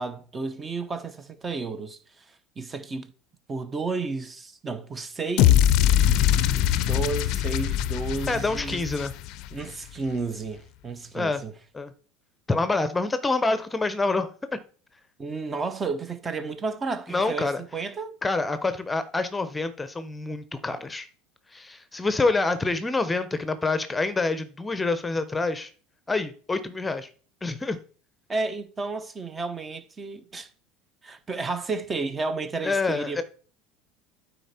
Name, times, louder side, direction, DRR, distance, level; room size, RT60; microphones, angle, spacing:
voice 1, 0.0-2.0 2.6-3.1 3.5-5.8 6.8-8.8 9.5-11.5 15.2-18.1 28.3-30.5 31.0-33.2, right 4 dB, 25° right, 0.9 m, -32 dB
sound 1, 5.4-9.6, left 11 dB, 60° left, 0.5 m, -22 dB
voice 2, 8.3-9.1 11.1-11.4 11.7-11.9 12.5-14.6 17.1-17.6 18.2-21.1 21.5-25.7 26.1-27.1 27.4-27.8 32.6-33.2, left 3 dB, 15° left, 0.8 m, -27 dB
9.0 x 4.2 x 4.3 m
hypercardioid pair, 90°, 0 cm